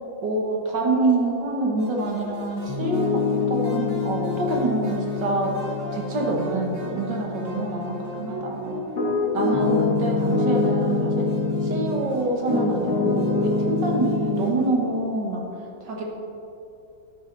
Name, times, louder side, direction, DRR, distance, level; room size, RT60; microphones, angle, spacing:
voice 1, 0.2-5.6 5.9-8.8 9.3-11.3 11.6-15.4 15.8-16.0, right 2 dB, 65° right, 0 dB, 2.1 m, -26 dB
sound 1, 1.8-14.7, equal, 40° right, 3.1 m, -38 dB
Piano, 2.7-12.0 12.5-14.5, left 3 dB, 85° left, 2.5 m, -26 dB
12.5 x 9.3 x 4.1 m, 2.8 s
omnidirectional pair, 2.1 m